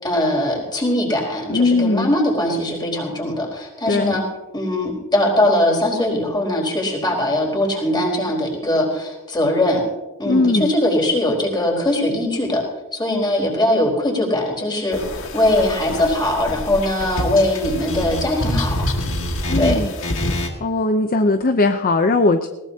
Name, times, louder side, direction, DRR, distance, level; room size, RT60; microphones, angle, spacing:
voice 1, 0.0-4.2 4.5-9.8 10.2-12.6 12.9-15.0 15.3-18.8 19.6-19.9, left 1 dB, 20° left, 0 dB, 4.4 m, -20 dB
voice 2, 1.5-2.1 3.9-4.2 10.3-10.7 19.5-19.9 20.3-22.5, left 2 dB, 40° left, 7 dB, 0.7 m, -19 dB
sound 1, 14.9-20.5, left 1 dB, 60° left, 1.9 m, -26 dB
20.0 x 18.0 x 2.8 m, 1.1 s
head